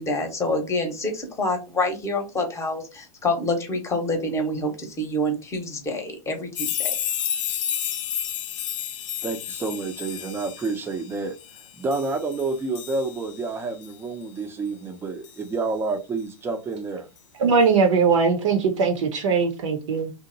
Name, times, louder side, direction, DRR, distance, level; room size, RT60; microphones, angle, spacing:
voice 1, 0.0-6.9, left 1 dB, 15° left, 0.9 m, -27 dB
sound 1, 6.6-13.5 13.8-13.9 15.2-15.3, left 9 dB, 60° left, 0.5 m, -31 dB
voice 2, 9.2-11.4 11.7-17.1, right 3 dB, 10° right, 0.5 m, -29 dB
voice 3, 17.4-20.1, right 5 dB, 55° right, 0.6 m, -20 dB
2.9 x 2.0 x 3.9 m
figure-of-eight pair, 100°, 18 cm